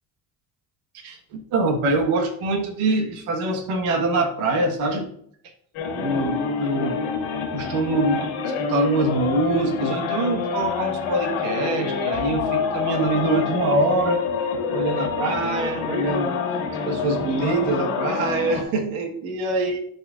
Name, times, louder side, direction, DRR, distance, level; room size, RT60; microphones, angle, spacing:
voice 1, 0.9-5.1 6.0-7.0 7.5-14.2 14.7-16.4 16.8-19.8, right 2 dB, 80° right, 4 dB, 1.5 m, -24 dB
sound 1, 5.7-18.6, left 6 dB, 75° left, 1.9 m, -27 dB
12.0 x 4.2 x 2.4 m, 0.65 s
hypercardioid pair, 60°, 49 cm